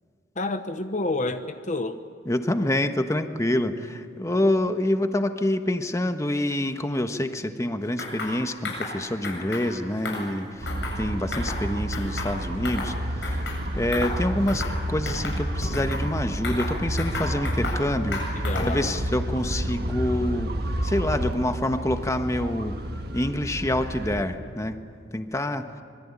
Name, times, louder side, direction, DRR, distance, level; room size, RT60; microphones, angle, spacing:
voice 1, 0.4-2.0 18.4-19.0, left 2 dB, 45° left, 8 dB, 1.0 m, -29 dB
voice 2, 2.2-10.7 11.0-13.4 13.7-20.5 20.8-22.8 23.1-24.8 25.1-25.7, left 1 dB, 20° left, 7 dB, 1.3 m, -27 dB
sound 1, 8.0-8.3 8.6-8.9 9.2-9.7 10.0-11.0 11.3-11.6 11.9-12.9 13.2-13.6 13.9-14.2 14.5-14.8 15.1-16.0 16.4-17.8 18.1-18.8, left 3 dB, 90° left, 7.8 m, -33 dB
sound 2, 10.6-24.2, right 1 dB, 60° right, 1.8 m, -30 dB
25.5 x 23.0 x 9.8 m, 2.2 s
head